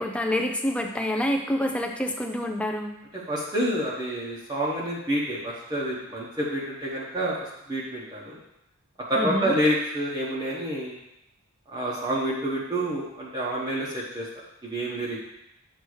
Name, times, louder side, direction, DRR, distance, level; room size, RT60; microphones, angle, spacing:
voice 1, 0.0-2.9 9.2-9.6, left 1 dB, 5° left, 3 dB, 0.5 m, -27 dB
voice 2, 3.1-8.4 9.1-10.9 11.7-14.3 14.6-15.2, right 1 dB, 20° right, -7 dB, 1.1 m, -28 dB
8.5 x 2.9 x 6.3 m, 0.84 s
head